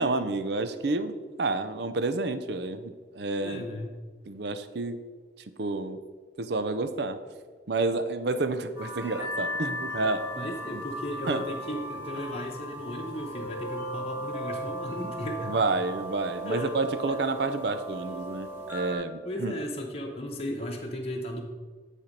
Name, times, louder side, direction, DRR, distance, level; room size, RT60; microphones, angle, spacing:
voice 1, 0.0-3.7 4.3-5.0 5.6-6.0 6.4-7.2 7.7-10.5 11.3-11.4 15.5-19.5, right 3 dB, 60° right, 11 dB, 0.5 m, -29 dB
voice 2, 3.4-4.0 10.4-15.6 16.4-16.7 17.1-17.2 19.2-21.4, left 1 dB, 30° left, 1 dB, 0.9 m, -35 dB
sound 1, 8.8-18.9, equal, 10° right, 1.6 m, -36 dB
9.9 x 4.3 x 5.2 m, 1.5 s
head